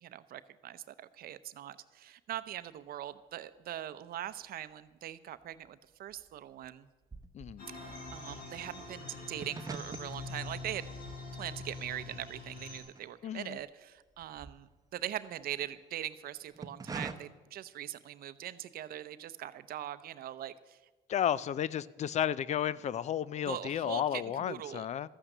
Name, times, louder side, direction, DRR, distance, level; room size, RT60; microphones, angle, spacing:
voice 1, 0.0-6.9 7.7-10.9 11.4-20.8 23.4-24.2 24.5-24.9, right 12 dB, 60° right, 0.7 m, -42 dB
sound 1, 4.3-5.1 5.3-13.7 14.0-15.7 16.3-17.1, right 4 dB, 20° right, 0.9 m, -47 dB
voice 2, 7.3-7.7 13.2-13.6 21.1-25.1, left 10 dB, 45° left, 0.4 m, -33 dB
sound 2, 7.6-12.8, left 3 dB, 60° left, 4.1 m, -44 dB
13.0 x 8.8 x 6.7 m
cardioid pair, 110°, 17 cm